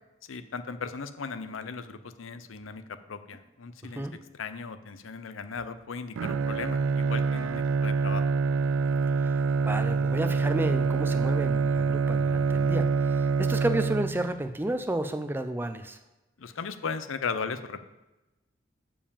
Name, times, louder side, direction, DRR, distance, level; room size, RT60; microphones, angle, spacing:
voice 1, 0.3-4.1 4.4-8.2 16.4-17.8, left 5 dB, 85° left, 11 dB, 0.6 m, -37 dB
Bowed string instrument, 6.2-14.5, right 4 dB, 85° right, 0.3 m, -26 dB
voice 2, 9.6-16.0, right 1 dB, 10° right, 8 dB, 0.4 m, -31 dB
7.2 x 4.9 x 7.0 m, 1.1 s
head